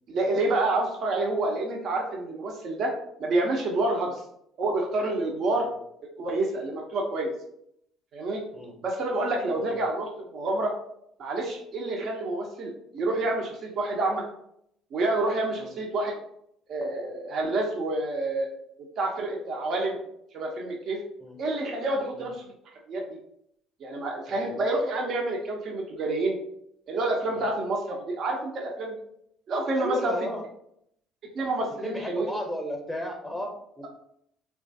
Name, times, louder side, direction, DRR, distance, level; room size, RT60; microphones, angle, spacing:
voice 1, 0.1-2.9 3.2-4.2 4.6-5.7 6.2-7.3 8.1-8.4 8.8-10.7 11.2-14.2 14.9-16.2 16.7-18.5 19.0-20.0 20.3-21.0 21.4-22.5 22.9-23.2 23.8-26.4 26.9-29.0 29.5-30.1 31.3-32.3, right 2 dB, 55° right, 1 dB, 0.5 m, -28 dB
voice 2, 29.7-30.4 31.8-33.9, left 1 dB, ahead, 2 dB, 0.7 m, -34 dB
3.1 x 2.3 x 2.6 m, 0.74 s
supercardioid pair, 70°, 0 cm